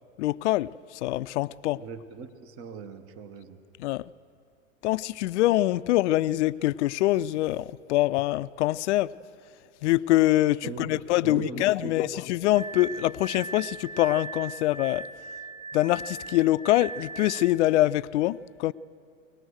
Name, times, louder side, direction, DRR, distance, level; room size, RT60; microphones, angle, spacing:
voice 1, 0.2-0.7 1.0-1.8 3.8-4.0 4.8-9.2 9.8-15.0 15.7-18.7, left 16 dB, 60° left, 0.5 m, -24 dB
voice 2, 1.7-3.6 10.6-12.1, right 5 dB, 35° right, 1.1 m, -40 dB
Glass, 12.6-17.6, right 4 dB, 10° right, 2.0 m, -39 dB
23.5 x 19.0 x 6.4 m
hypercardioid pair, 120°, 40 cm